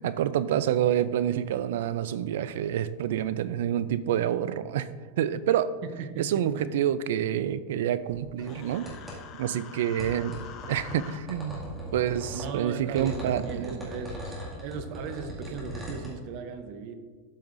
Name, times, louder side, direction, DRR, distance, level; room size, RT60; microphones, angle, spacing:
voice 1, 0.0-4.9 5.2-5.7 6.2-8.9 9.4-10.4 10.7-11.6 11.9-13.6, right 10 dB, 75° right, 0.4 m, -27 dB
voice 2, 5.8-6.7 12.3-17.0, right 6 dB, 50° right, 0.8 m, -37 dB
sound 1, 8.1-9.2 10.0-12.5 13.0-16.1, equal, 10° right, 2.2 m, -39 dB
Human voice, 8.4-11.2, left 7 dB, 40° left, 0.8 m, -46 dB
12.5 x 5.4 x 2.6 m
supercardioid pair, 150°, 0 cm